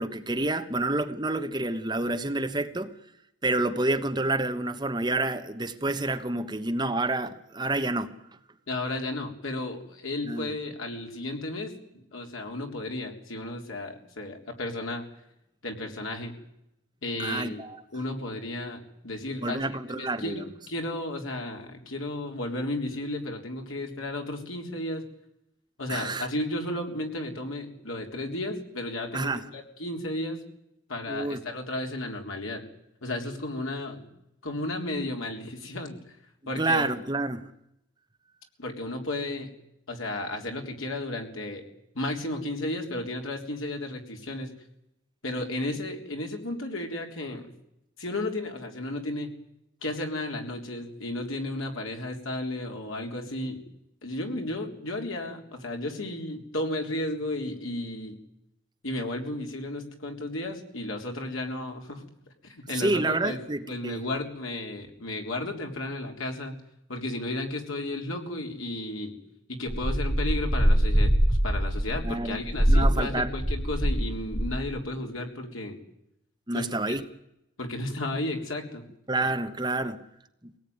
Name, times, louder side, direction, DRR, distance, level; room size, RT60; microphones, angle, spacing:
voice 1, 0.0-2.9 3.4-8.1 10.2-10.5 17.2-17.8 19.4-20.4 25.9-26.3 29.1-29.5 31.1-31.4 36.5-37.5 62.7-64.1 72.0-72.4 72.7-73.3 76.5-77.0 79.1-80.0 80.4-80.5, right 2 dB, 20° right, 8 dB, 1.1 m, -28 dB
voice 2, 8.7-15.1 15.6-16.4 17.0-17.6 17.9-25.1 25.8-30.4 30.9-32.6 33.0-34.1 34.4-36.0 36.5-36.9 38.6-39.5 39.9-41.7 41.9-44.5 45.2-47.5 48.0-49.3 49.8-53.6 54.0-58.2 58.8-62.0 62.4-63.4 63.7-66.6 66.9-69.2 69.5-75.8 76.5-77.0 77.6-78.9, left 1 dB, 90° left, 3 dB, 3.6 m, -33 dB
sound 1, 69.7-74.0 74.3-74.7, equal, 5° left, 5.6 m, -23 dB
23.5 x 18.0 x 9.5 m, 0.85 s
head